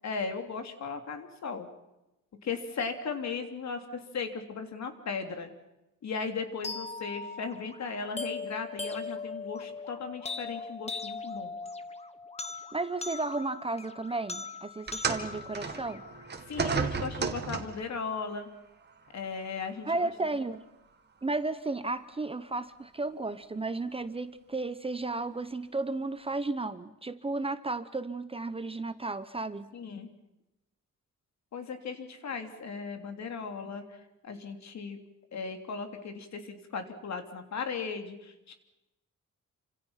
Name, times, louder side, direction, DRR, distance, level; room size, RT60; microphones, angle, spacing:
voice 1, 0.0-1.7 2.4-5.5 6.0-11.5 16.5-18.5 19.1-20.1 29.7-30.1 31.5-34.0 34.2-35.0 35.3-38.5, left 5 dB, 60° left, 6 dB, 3.4 m, -37 dB
sound 1, 6.6-16.7, left 3 dB, 20° left, 1.4 m, -40 dB
voice 2, 12.7-16.0 19.9-20.6 21.2-29.7, right 3 dB, 20° right, 12 dB, 0.9 m, -33 dB
sound 2, 14.9-17.9 18.9-19.1 19.9-20.0, right 5 dB, 35° right, 2.2 m, -33 dB
29.0 x 26.5 x 5.8 m, 0.95 s
wide cardioid pair, 180°, 31 cm